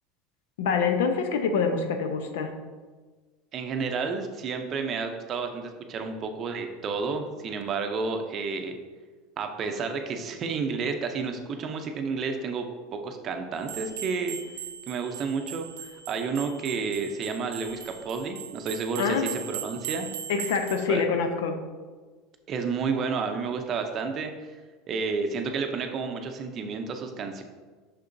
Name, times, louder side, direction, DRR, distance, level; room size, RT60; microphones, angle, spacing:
voice 1, 0.6-2.5 19.0-19.3 20.3-21.6, left 5 dB, 90° left, 6 dB, 0.7 m, -26 dB
voice 2, 3.5-8.8 9.4-12.7 12.9-14.4 14.9-20.1 20.9-21.0 22.5-24.3 24.9-27.4, right 5 dB, 30° right, 5 dB, 0.6 m, -31 dB
sound 1, 13.6-20.9, right 9 dB, 85° right, 0.7 m, -39 dB
6.6 x 5.9 x 2.6 m, 1.4 s
supercardioid pair, 160°, 0 cm